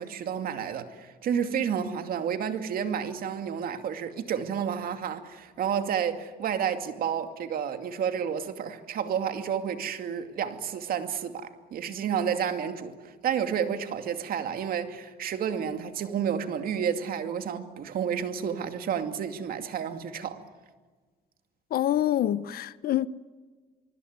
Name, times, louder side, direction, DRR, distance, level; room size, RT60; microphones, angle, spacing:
voice 1, 0.0-20.4, right 8 dB, 60° right, 2.5 m, -30 dB
voice 2, 21.7-23.1, left 12 dB, 60° left, 1.0 m, -26 dB
24.5 x 24.0 x 9.6 m
cardioid pair, 110°, 17 cm